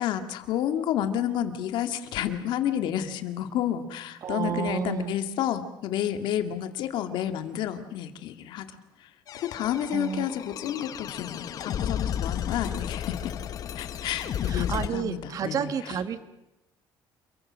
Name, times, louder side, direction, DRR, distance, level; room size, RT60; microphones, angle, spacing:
voice 1, 0.0-8.7 9.3-13.3 13.8-15.7, left 10 dB, 80° left, 7 dB, 2.2 m, -30 dB
voice 2, 4.2-5.2 9.9-10.3 14.3-16.2, right 7 dB, 45° right, 11 dB, 1.4 m, -31 dB
sound 1, 9.3-14.9, left 9 dB, 50° left, 1.1 m, -33 dB
28.0 x 23.0 x 6.3 m, 0.96 s
cardioid pair, 155°, 8 cm